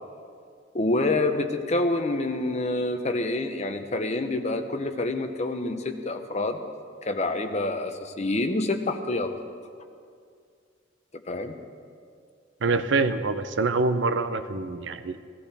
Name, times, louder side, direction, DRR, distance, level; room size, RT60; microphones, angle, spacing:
voice 1, 0.7-6.6 7.0-9.3 11.3-11.6, left 2 dB, 35° left, 7 dB, 0.7 m, -27 dB
voice 2, 12.6-15.3, right 3 dB, 70° right, 11 dB, 0.6 m, -25 dB
17.5 x 14.0 x 3.4 m, 2.2 s
head